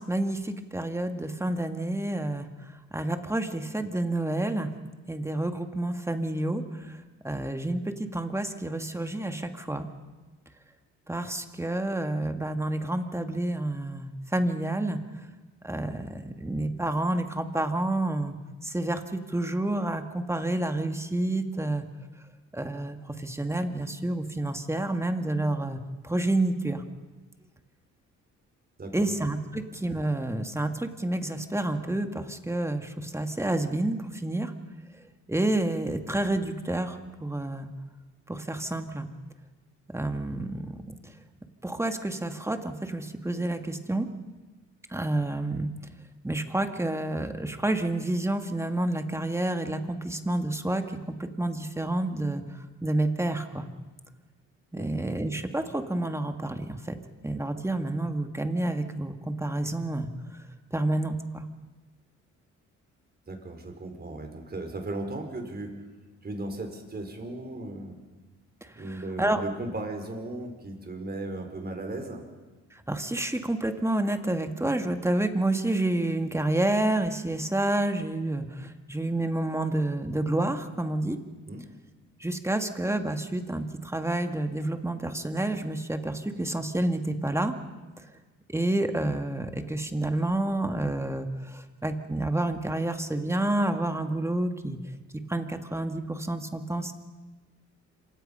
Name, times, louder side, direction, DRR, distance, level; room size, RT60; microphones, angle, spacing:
voice 1, 0.0-2.5 2.9-4.7 5.1-7.0 7.2-9.9 11.1-15.0 15.6-18.4 18.6-21.8 22.5-26.8 28.9-34.5 35.3-37.7 38.3-39.1 39.9-40.8 41.6-44.1 44.9-45.7 46.2-52.4 52.8-53.7 54.7-57.0 57.2-60.1 60.7-61.5 68.6-69.4 72.7-81.2 82.2-87.5 88.5-94.8 95.1-96.9, right 1 dB, 10° right, 6 dB, 2.0 m, -29 dB
voice 2, 28.8-29.1 29.5-29.6 54.7-54.9 63.3-65.7 66.2-68.0 68.7-72.2 81.5-81.6, right 2 dB, 30° right, 4 dB, 5.3 m, -36 dB
27.0 x 25.0 x 5.7 m, 1.2 s
cardioid pair, 90°, 30 cm